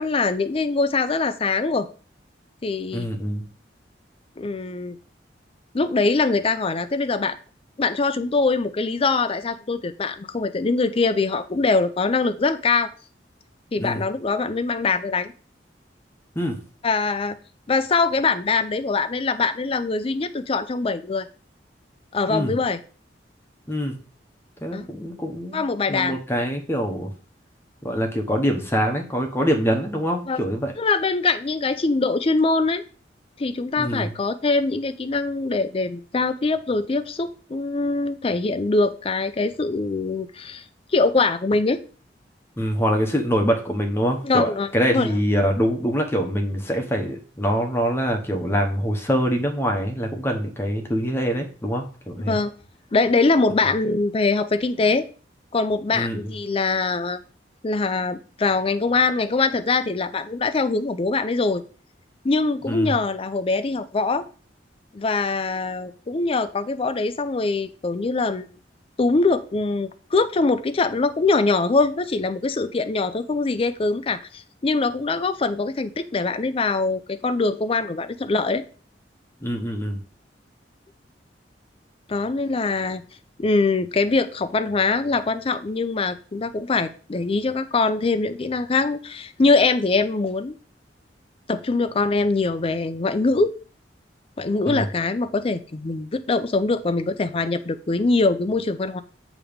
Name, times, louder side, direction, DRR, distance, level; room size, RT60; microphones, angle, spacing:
voice 1, 0.0-1.9 2.6-3.1 4.4-5.0 5.7-7.4 7.8-12.9 13.7-15.3 16.8-17.4 17.7-21.3 22.1-22.8 24.7-24.9 25.5-26.2 30.3-30.4 30.8-32.8 33.4-40.6 40.9-41.8 44.2-45.1 52.2-52.5 52.9-55.1 55.5-57.2 57.6-61.6 62.2-64.3 64.9-68.5 69.0-78.6 82.1-83.0 83.4-90.5 91.5-93.5 94.4-99.0, left 3 dB, 30° left, 10 dB, 0.5 m, -23 dB
voice 2, 2.9-3.5 13.8-14.0 16.4-16.6 22.3-22.6 23.7-24.0 24.6-27.1 27.8-30.7 33.8-34.1 42.6-52.4 55.9-56.3 62.6-63.0 79.4-80.0 94.7-94.9, equal, 15° left, 3 dB, 0.9 m, -24 dB
8.5 x 3.0 x 5.1 m, 0.38 s
head